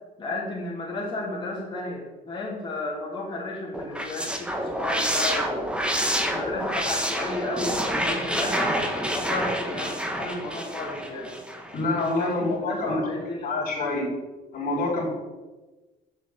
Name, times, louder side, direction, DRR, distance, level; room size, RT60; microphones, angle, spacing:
voice 1, 0.2-5.6 6.2-11.3 11.8-14.0, left 2 dB, 30° left, -5 dB, 3.1 m, -33 dB
sound 1, 3.7-11.8, equal, 5° right, 1.4 m, -28 dB
voice 2, 11.7-14.1 14.5-15.0, left 2 dB, 65° left, -3 dB, 3.9 m, -27 dB
7.6 x 7.0 x 7.1 m, 1.2 s
cardioid pair, 110°, 17 cm